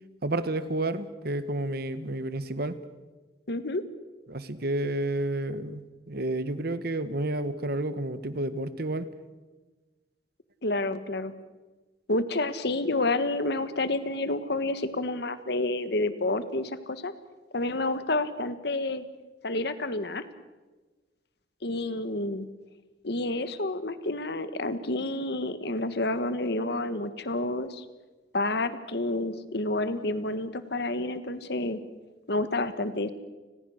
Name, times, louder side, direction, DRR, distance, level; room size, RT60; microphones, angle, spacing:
voice 1, 0.2-2.8 4.3-9.1, right 1 dB, 60° right, 13 dB, 1.4 m, -30 dB
voice 2, 3.5-3.8 10.6-11.3 12.1-17.1 17.5-19.0 19.4-20.2 21.6-22.5 23.0-27.8 28.3-31.8 32.3-33.1, left 2 dB, 65° left, 12 dB, 1.6 m, -29 dB
29.5 x 21.0 x 6.6 m, 1.2 s
head